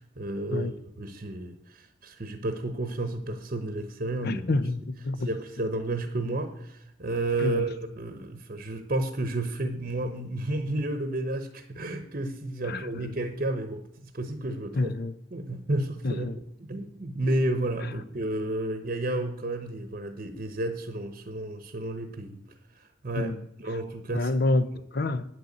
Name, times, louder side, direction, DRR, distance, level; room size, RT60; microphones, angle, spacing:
voice 1, 0.0-4.4 5.2-14.9 15.3-16.3 16.6-22.4 22.7-24.4 24.7-24.8, right 2 dB, 45° right, 0.9 m, -32 dB
voice 2, 4.2-5.3 7.4-7.6 12.6-13.1 14.7-15.1 16.0-16.4 23.2-23.4 24.1-24.7 24.9-25.3, left 2 dB, 55° left, 0.7 m, -27 dB
9.0 x 6.7 x 8.5 m
head